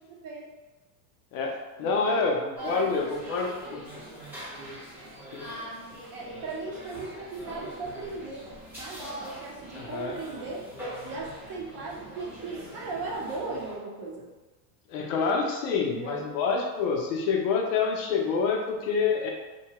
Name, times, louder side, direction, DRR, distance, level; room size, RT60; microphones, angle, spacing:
voice 1, 0.1-0.5 1.8-2.2 2.6-3.8 6.1-8.5 8.8-10.7 11.0-14.3 15.7-16.3, right 3 dB, 45° right, -2 dB, 0.7 m, -38 dB
voice 2, 1.3-3.8 5.3-5.5 9.7-10.2 14.9-19.3, left 5 dB, 55° left, 1 dB, 0.5 m, -27 dB
sound 1, 2.6-13.8, equal, 5° right, 0.7 m, -42 dB
2.8 x 2.2 x 2.9 m, 1.1 s
supercardioid pair, 135°, 50 cm